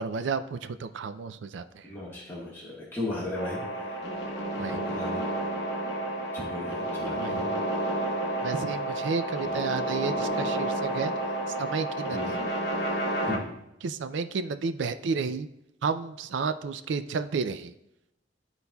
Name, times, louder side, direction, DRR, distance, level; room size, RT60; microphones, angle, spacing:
voice 1, 0.0-1.8 4.6-4.9 7.2-7.4 8.4-11.1 11.6-12.4 13.8-15.5 15.8-17.7, right 5 dB, 70° right, 11 dB, 0.4 m, -31 dB
voice 2, 1.8-4.0 4.5-5.2 6.3-7.5 7.8-8.1 9.4-9.6 12.1-12.4 13.3-13.5, left 2 dB, 10° left, -7 dB, 1.4 m, -36 dB
sound 1, 3.4-13.4, right 1 dB, 60° left, 1.0 m, -30 dB
12.0 x 4.0 x 2.3 m, 0.87 s
head